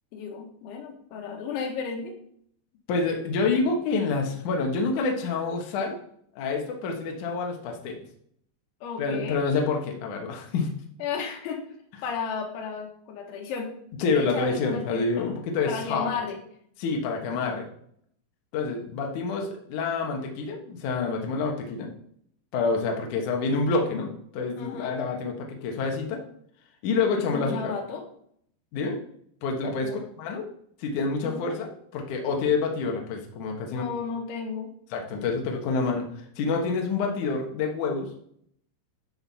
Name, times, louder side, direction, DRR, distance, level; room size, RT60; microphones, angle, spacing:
voice 1, 0.1-2.1 8.8-9.4 11.0-11.7 12.0-13.7 14.2-15.3 15.7-16.4 24.6-25.0 27.3-28.0 29.8-30.0 31.2-31.6 33.7-34.7, left 5 dB, 90° left, 3 dB, 3.8 m, -34 dB
voice 2, 2.9-5.9 6.4-8.0 9.0-10.7 14.0-16.1 16.8-17.7 18.5-21.9 22.5-26.2 26.8-27.7 28.7-29.0 29.4-30.5 30.8-33.8 34.9-36.1 36.4-38.1, left 4 dB, 60° left, 2 dB, 2.3 m, -27 dB
12.5 x 5.6 x 4.1 m, 0.67 s
omnidirectional pair, 5.2 m